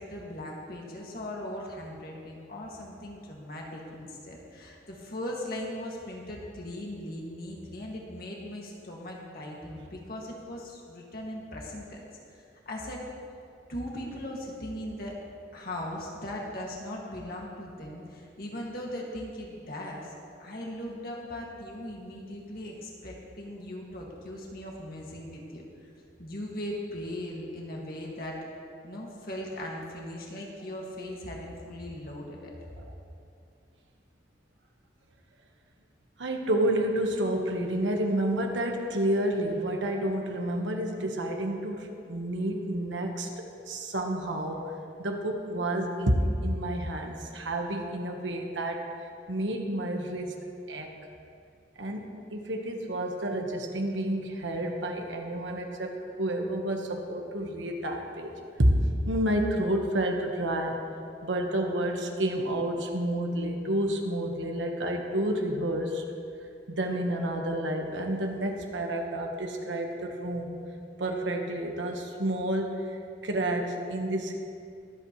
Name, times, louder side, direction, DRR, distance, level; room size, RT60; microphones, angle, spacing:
voice 1, 0.0-12.0 12.7-13.0 13.7-15.1 15.5-20.1 20.4-25.6 26.2-28.4 28.8-32.5, left 1 dB, 50° left, -2 dB, 2.0 m, -39 dB
voice 2, 36.2-44.7 45.0-48.8 49.3-50.3 50.7-50.9 51.8-58.7 59.1-60.8 61.2-66.0 66.7-70.5 71.0-74.4, right 1 dB, 90° right, 2 dB, 1.3 m, -30 dB
23.0 x 8.5 x 3.1 m, 2.5 s
head